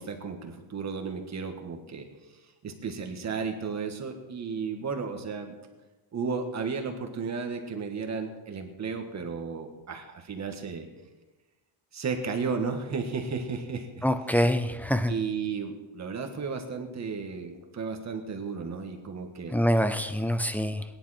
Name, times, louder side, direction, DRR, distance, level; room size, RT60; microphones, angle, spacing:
voice 1, 0.0-2.1 2.6-5.6 6.1-10.9 11.9-14.0 15.1-19.5, right 5 dB, 35° right, 4 dB, 1.7 m, -34 dB
voice 2, 14.0-15.1 19.5-20.8, equal, 5° left, 9 dB, 0.4 m, -25 dB
21.5 x 10.5 x 4.3 m, 1.2 s
cardioid pair, 175°, 49 cm